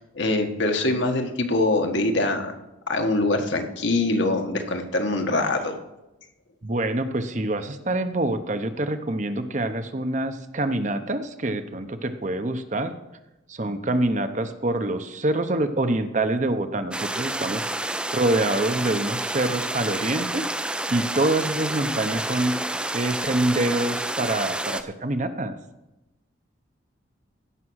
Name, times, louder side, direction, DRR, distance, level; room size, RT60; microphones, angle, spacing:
voice 1, 0.1-2.5 2.9-5.8, left 2 dB, 70° left, 4 dB, 1.5 m, -23 dB
voice 2, 6.6-13.0 13.5-17.7 18.1-20.4 20.9-22.6 22.9-25.5, right 2 dB, 35° right, 8 dB, 0.8 m, -25 dB
sound 1, 16.9-24.8, right 1 dB, 5° right, 0.4 m, -29 dB
15.5 x 6.1 x 6.3 m, 0.97 s
head